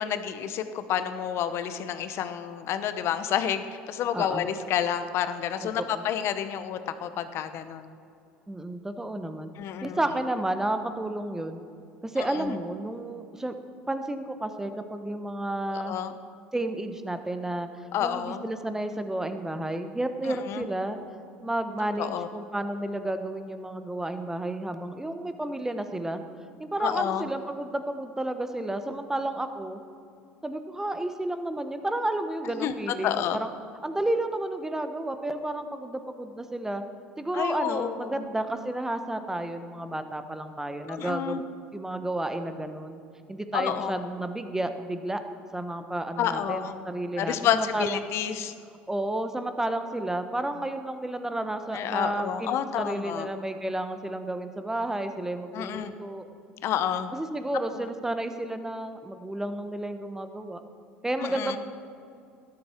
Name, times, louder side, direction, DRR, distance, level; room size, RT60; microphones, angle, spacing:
voice 1, 0.0-7.9 9.6-10.0 12.2-12.5 15.7-16.1 17.9-18.4 20.3-20.7 22.0-22.3 26.8-27.3 32.6-32.7 33.0-33.4 37.3-38.3 40.9-41.4 43.5-44.0 46.2-46.8 47.2-48.5 51.7-53.3 55.5-55.9 56.6-57.1 61.2-61.6, left 9 dB, 55° left, 10 dB, 0.9 m, -29 dB
voice 2, 4.1-4.4 5.6-6.0 8.5-9.5 9.8-11.7 12.0-13.5 13.9-15.9 16.5-17.7 18.0-21.0 21.4-26.2 26.6-29.8 30.4-33.5 33.8-36.8 37.2-41.4 41.7-43.0 43.3-45.2 45.5-48.0 48.9-56.2 57.1-60.6 61.0-61.6, right 1 dB, 10° right, 8 dB, 1.2 m, -31 dB
13.0 x 11.5 x 4.6 m, 2.5 s
hypercardioid pair, 80°, 5 cm